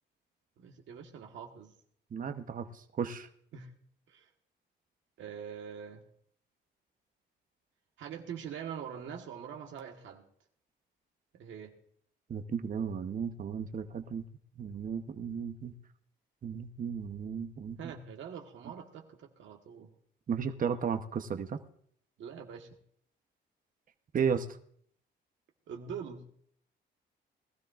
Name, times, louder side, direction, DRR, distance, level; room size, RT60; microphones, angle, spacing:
voice 1, 0.6-1.7 3.5-3.7 4.1-4.3 5.2-6.0 8.0-10.2 11.3-11.8 17.8-19.9 22.2-22.8 25.7-26.2, right 7 dB, 75° right, 3 dB, 1.5 m, -44 dB
voice 2, 2.1-2.7 3.0-3.3 12.3-14.2 14.6-15.7 16.4-17.9 20.3-21.6 24.1-24.5, right 6 dB, 45° right, 8 dB, 0.9 m, -34 dB
20.5 x 13.0 x 2.5 m, 0.63 s
cardioid pair, 90°, 20 cm